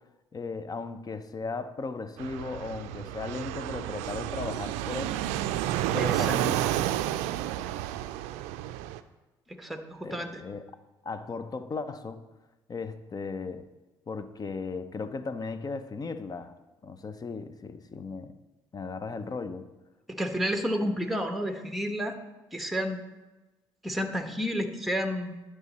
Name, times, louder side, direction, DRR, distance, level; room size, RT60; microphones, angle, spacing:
voice 1, 0.3-5.3 5.9-6.6 10.0-10.6 11.0-12.2 12.7-13.6 14.1-16.6 16.8-18.3 18.7-19.7, left 4 dB, 35° left, 12 dB, 0.7 m, -36 dB
Fixed-wing aircraft airplane, 2.2-9.0, right 13 dB, 75° right, 0.4 m, -31 dB
voice 2, 6.0-6.3 9.5-10.4 20.1-22.2 22.5-23.0 23.8-25.4, equal, ahead, 6 dB, 1.1 m, -31 dB
11.0 x 5.0 x 4.2 m, 1.1 s
hypercardioid pair, 55°, 11 cm